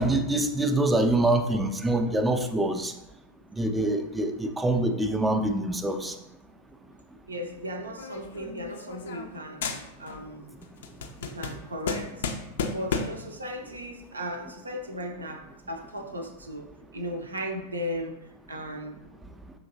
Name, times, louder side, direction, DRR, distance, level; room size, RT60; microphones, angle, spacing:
voice 1, 0.0-2.9 3.6-6.1, right 1 dB, 10° right, 5 dB, 0.4 m, -25 dB
voice 2, 7.3-9.6 10.0-10.6 11.2-12.3 12.7-16.7 16.9-18.2 18.5-19.0, equal, 75° right, 4 dB, 0.5 m, -36 dB
sound 1, 8.0-9.4 9.6-10.3 10.6-13.3, left 5 dB, 60° left, 0.4 m, -33 dB
5.6 x 2.9 x 2.6 m, 0.90 s
figure-of-eight pair, 90°, 0 cm